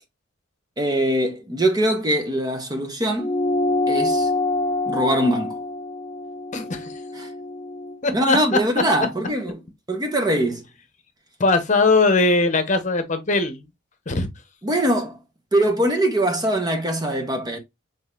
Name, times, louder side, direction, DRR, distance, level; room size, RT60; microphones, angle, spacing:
voice 1, 0.8-3.3 3.9-4.3 4.9-5.6 7.1-7.3 8.1-9.5 9.9-10.6 14.6-15.2 15.5-17.6, right 1 dB, 20° right, 0.8 m, -22 dB
sound 1, 3.2-8.0, left 2 dB, 10° left, 1.3 m, -25 dB
voice 2, 6.5-7.0 8.0-8.4 11.4-13.6 14.1-14.3, left 3 dB, 40° left, 1.0 m, -20 dB
6.2 x 3.3 x 2.4 m
head